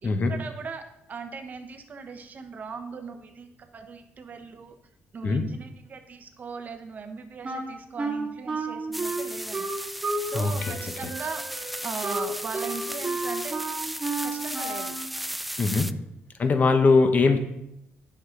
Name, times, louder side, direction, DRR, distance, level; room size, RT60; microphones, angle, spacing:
voice 1, 0.0-4.7 5.1-9.7 10.2-11.4 11.8-13.6 14.2-15.0 15.6-15.8, right 5 dB, 40° right, 6 dB, 1.0 m, -39 dB
Wind instrument woodwind instrument, 7.4-10.3 10.6-15.1, right 3 dB, 25° right, 2.3 m, -32 dB
sound 1, 8.9-15.9, equal, ahead, 0.3 m, -36 dB
voice 2, 10.3-10.7 15.6-15.9 16.4-17.4, left 4 dB, 40° left, 7 dB, 1.1 m, -21 dB
10.0 x 6.5 x 3.9 m, 0.83 s
cardioid pair, 110°, 4 cm